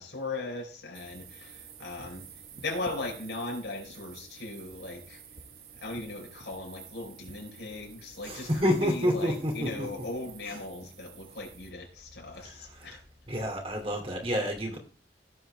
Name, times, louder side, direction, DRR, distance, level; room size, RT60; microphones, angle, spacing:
voice 1, 0.0-2.3 2.6-5.2 5.8-13.0, left 2 dB, 80° left, 4.4 m, -38 dB
sound 1, 0.9-11.7, right 6 dB, 55° right, 1.7 m, -51 dB
voice 2, 8.2-9.9 10.4-10.6 12.4-13.0 13.3-14.8, equal, 30° right, 2.6 m, -29 dB
16.5 x 7.8 x 3.4 m
head